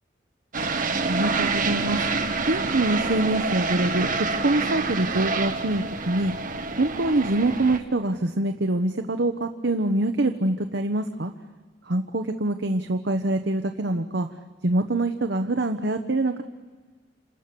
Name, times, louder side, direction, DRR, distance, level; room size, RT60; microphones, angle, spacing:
sound 1, 0.5-7.8, right 3 dB, 50° right, 1.5 m, -27 dB
voice 1, 1.0-2.0 2.5-4.1 4.4-6.3 6.8-11.3 11.9-14.3 14.6-16.4, right 2 dB, 65° right, 6 dB, 1.0 m, -24 dB
28.5 x 28.0 x 6.8 m, 1.4 s
head